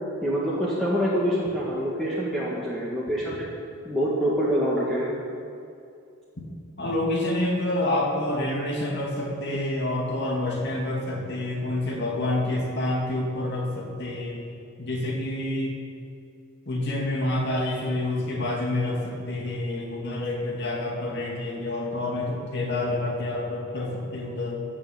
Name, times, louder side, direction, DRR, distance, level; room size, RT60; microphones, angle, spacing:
voice 1, 0.2-3.5 3.8-5.1, equal, ahead, -8 dB, 1.7 m, -25 dB
voice 2, 6.8-14.4 14.8-15.8 16.7-24.6, left 1 dB, 50° left, -1 dB, 2.5 m, -28 dB
15.5 x 6.8 x 8.5 m, 2.5 s
head